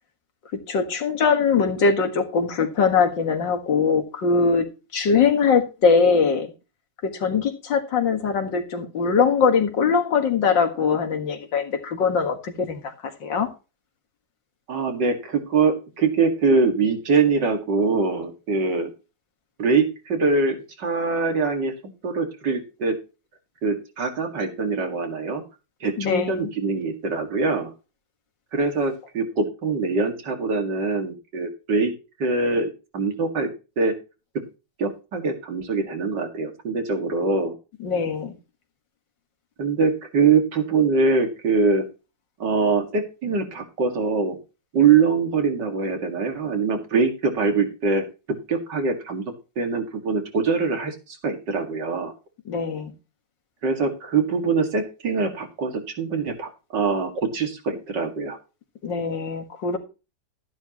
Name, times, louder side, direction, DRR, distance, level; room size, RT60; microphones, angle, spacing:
voice 1, 0.7-4.7 4.9-6.5 7.0-12.9 13.2-13.5 26.0-26.5 37.8-38.3 52.5-52.9 58.8-59.8, left 5 dB, 90° left, 6 dB, 2.4 m, -21 dB
voice 2, 14.7-18.9 19.6-21.7 22.0-23.0 23.6-25.4 25.8-27.7 28.5-31.9 32.2-32.7 32.9-33.5 33.8-33.9 34.8-37.5 39.6-41.9 42.4-44.4 44.7-48.0 48.5-49.2 49.6-52.1 53.6-58.4, right 4 dB, 75° right, 4 dB, 2.7 m, -23 dB
13.0 x 10.5 x 3.0 m, 0.31 s
omnidirectional pair, 1.9 m